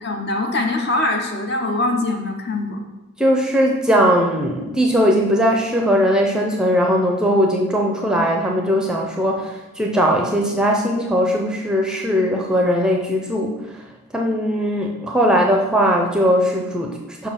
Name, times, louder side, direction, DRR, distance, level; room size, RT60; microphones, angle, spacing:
voice 1, 0.0-2.8, left 2 dB, 50° left, 3 dB, 0.8 m, -22 dB
voice 2, 3.2-13.5 14.1-17.3, equal, 5° right, 0 dB, 0.5 m, -19 dB
5.4 x 4.6 x 5.7 m, 1.0 s
head